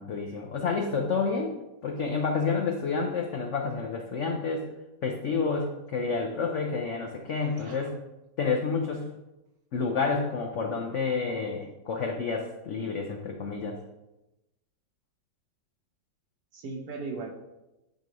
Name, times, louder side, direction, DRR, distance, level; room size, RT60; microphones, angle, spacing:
voice 1, 0.0-1.5 1.8-4.7 5.0-7.9 8.4-9.1 9.7-13.8, left 4 dB, 70° left, 2 dB, 0.7 m, -29 dB
voice 2, 7.3-7.9 16.5-17.3, right 3 dB, 60° right, 3 dB, 1.2 m, -38 dB
8.9 x 3.0 x 5.1 m, 0.98 s
omnidirectional pair, 2.0 m